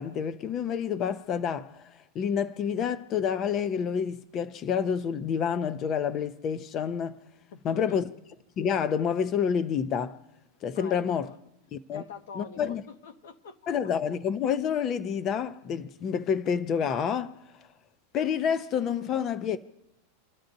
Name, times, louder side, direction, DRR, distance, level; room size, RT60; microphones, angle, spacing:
voice 1, 0.0-7.2 7.6-8.1 8.6-10.2 10.6-11.3 11.7-12.0 12.4-12.8 13.7-17.4 18.1-19.6, left 7 dB, 25° left, 0.4 m, -28 dB
voice 2, 7.5-8.0 10.7-11.3 11.9-13.8, left 5 dB, 80° left, 1.1 m, -45 dB
28.0 x 12.5 x 2.6 m
supercardioid pair, 170°, 0 cm